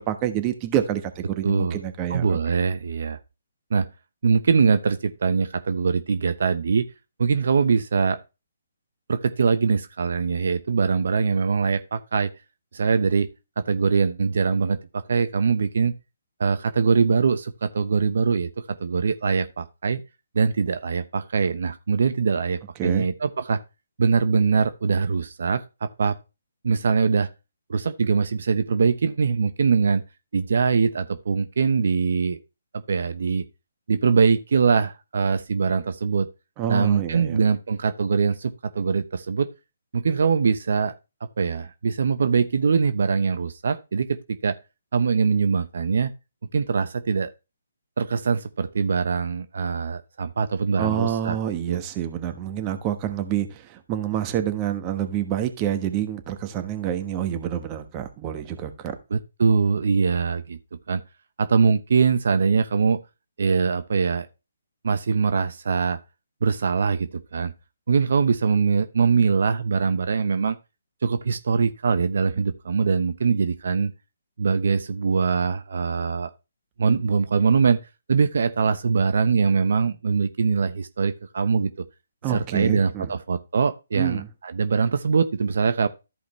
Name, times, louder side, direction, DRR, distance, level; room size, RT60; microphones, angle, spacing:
voice 1, 0.0-2.4 22.8-23.1 36.6-37.4 50.8-58.9 82.2-83.1 84.0-84.3, right 10 dB, 25° right, 1.2 m, -27 dB
voice 2, 1.4-1.8 2.1-3.2 3.7-3.9 4.2-6.9 7.2-8.2 9.1-12.3 12.7-13.3 13.6-15.9 16.4-20.0 20.3-23.6 24.0-25.6 26.0-26.2 26.6-27.3 27.7-30.0 30.3-32.4 32.7-33.4 33.9-36.3 36.7-39.5 39.9-40.9 41.4-44.6 44.9-46.1 46.5-47.3 48.0-51.4 51.7-51.8 59.1-60.6 60.9-61.0 61.4-63.0 63.4-64.3 64.8-66.0 66.4-67.5 67.9-70.6 71.0-73.9 74.4-76.3 76.8-77.8 78.1-81.7 82.3-85.9, right 5 dB, 65° right, 0.8 m, -22 dB
14.0 x 5.0 x 3.1 m
hypercardioid pair, 145°, 0 cm